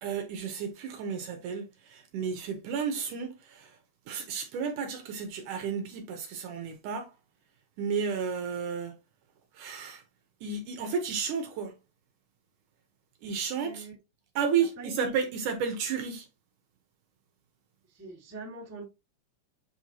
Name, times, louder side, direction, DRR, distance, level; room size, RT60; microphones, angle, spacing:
voice 1, 0.0-3.8 4.1-7.1 7.8-8.9 9.5-10.0 10.4-11.8 13.2-13.9 14.4-16.3, right 6 dB, 70° right, 2.2 m, -32 dB
voice 2, 13.6-13.9 14.8-15.1 17.9-18.8, right 3 dB, 5° right, 1.2 m, -43 dB
8.2 x 4.4 x 2.8 m
omnidirectional pair, 4.2 m